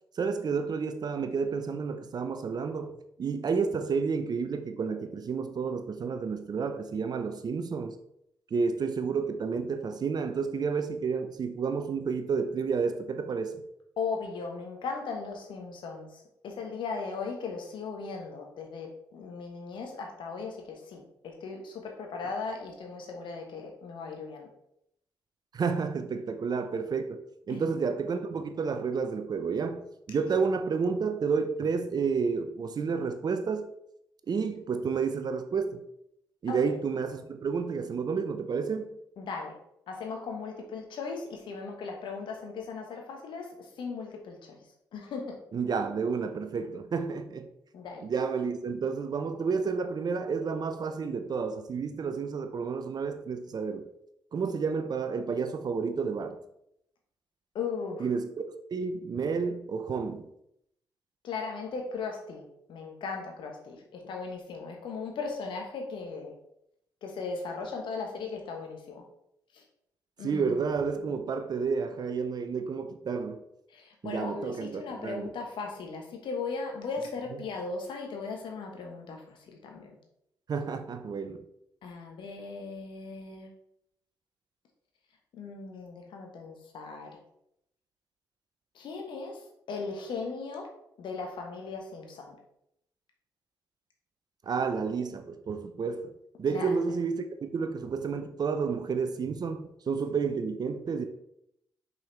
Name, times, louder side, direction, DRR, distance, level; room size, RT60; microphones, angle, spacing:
voice 1, 0.1-8.0 8.5-13.6 25.5-33.7 34.3-35.8 36.4-39.0 45.5-47.5 48.0-53.9 54.3-56.4 58.0-58.3 58.7-60.3 70.2-73.4 74.0-75.3 80.5-81.4 94.4-101.0, right 5 dB, 50° right, 0.7 m, -30 dB
voice 2, 14.0-24.5 27.5-27.6 36.5-36.7 39.2-39.6 39.9-44.7 44.9-45.4 47.7-48.0 57.5-58.1 61.2-66.3 67.0-69.0 69.5-69.6 70.2-70.6 73.7-79.9 81.8-83.5 85.3-87.2 88.7-90.7 91.0-92.3 96.5-96.8, left 4 dB, 65° left, 1.3 m, -37 dB
5.5 x 5.3 x 3.3 m
hypercardioid pair, 40°, 9 cm